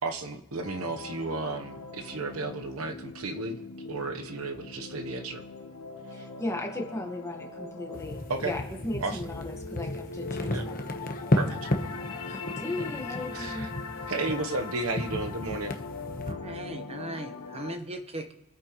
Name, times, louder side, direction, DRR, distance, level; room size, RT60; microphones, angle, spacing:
voice 1, 0.0-3.6 3.8-5.4 6.2-6.3 8.3-8.5 9.0-9.2 10.5-10.7 11.3-11.7 13.3-13.7 14.1-15.8, right 3 dB, 80° right, 6 dB, 1.0 m, -33 dB
sound 1, 0.6-17.8, left 4 dB, 85° left, 1.2 m, -41 dB
voice 2, 6.1-10.7 11.5-11.6 12.3-13.7 14.2-14.4, left 1 dB, 15° left, 2 dB, 1.5 m, -37 dB
sound 2, 7.9-16.3, left 1 dB, 40° left, 1.0 m, -33 dB
voice 3, 16.2-18.3, right 1 dB, 30° right, 7 dB, 1.0 m, -38 dB
25.0 x 8.8 x 3.1 m, 0.98 s
head